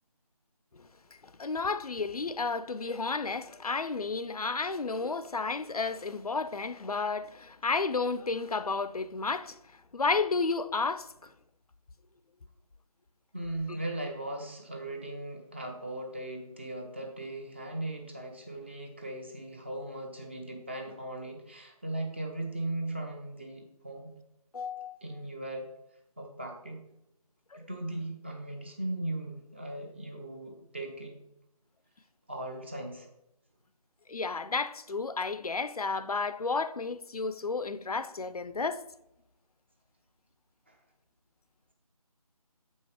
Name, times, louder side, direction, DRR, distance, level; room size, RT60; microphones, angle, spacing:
voice 1, 1.4-9.6 9.9-11.1 24.5-25.0 27.5-27.6 34.1-38.8, left 4 dB, 70° left, 0.5 m, -32 dB
voice 2, 13.3-24.1 25.0-25.7 26.2-26.8 27.5-31.2 32.3-33.1 40.7-40.8, right 1 dB, 20° right, 0.6 m, -38 dB
7.5 x 5.4 x 4.9 m
figure-of-eight pair, 160°, 20 cm